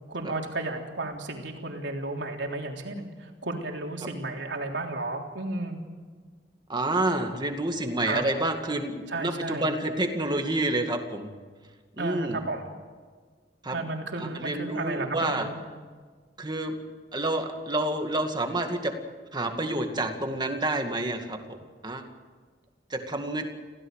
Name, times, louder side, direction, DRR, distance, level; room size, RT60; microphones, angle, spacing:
voice 1, 0.1-5.8 8.1-8.2 9.1-9.7 12.0-12.6 13.7-15.5, right 2 dB, 85° right, 1 dB, 3.5 m, -33 dB
voice 2, 6.7-11.3 12.0-12.4 13.6-13.7 14.2-15.5 16.4-16.7 17.1-18.9 19.3-21.6 21.8-22.0 22.9-23.4, right 2 dB, 25° right, 4 dB, 2.2 m, -28 dB
27.0 x 17.0 x 6.6 m, 1.5 s
head